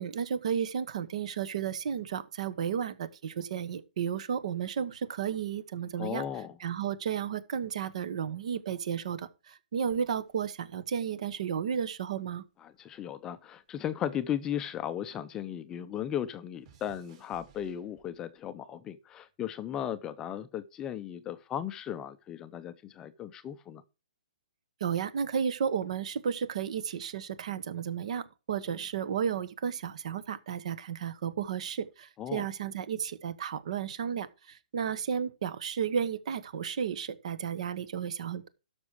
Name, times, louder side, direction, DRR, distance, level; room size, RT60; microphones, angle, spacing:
voice 1, 0.0-6.2 6.6-12.4 24.8-38.5, right 7 dB, 55° right, 1.1 m, -33 dB
voice 2, 6.0-6.6 12.6-23.8 32.2-32.5, left 10 dB, 15° left, 0.5 m, -36 dB
sound 1, 9.9-12.4 12.7-15.3 15.6-18.4 19.1-19.5, right 7 dB, 30° right, 3.1 m, -63 dB
12.5 x 6.1 x 4.8 m
hypercardioid pair, 160°, 4 cm